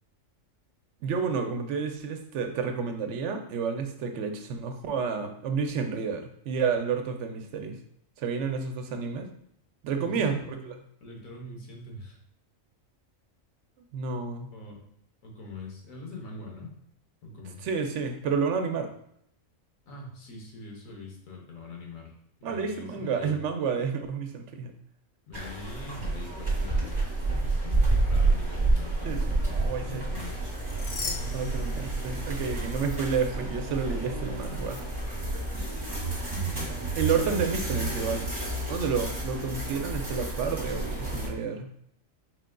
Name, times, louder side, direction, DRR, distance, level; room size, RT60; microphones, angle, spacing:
voice 1, 1.0-7.8 8.2-9.3 9.8-10.4 10.7-10.8 13.9-14.5 17.6-18.9 22.4-24.7 29.0-29.2 29.5-30.0 31.3-34.8 37.0-38.3 38.7-41.7, right 5 dB, 70° right, 5 dB, 0.8 m, -30 dB
voice 2, 9.9-10.6 11.0-12.2 14.5-14.8 15.2-16.7 17.2-17.6 19.9-22.1 22.4-23.4 25.3-30.4 30.8-31.6 35.5-36.9, left 3 dB, 90° left, 0 dB, 1.4 m, -43 dB
sound 1, 25.3-41.3, right 2 dB, 35° right, 1.2 m, -29 dB
sound 2, 30.4-32.4 32.7-33.0 34.6-34.8, left 4 dB, 60° left, 0.7 m, -39 dB
4.6 x 3.7 x 2.2 m, 0.70 s
omnidirectional pair, 1.4 m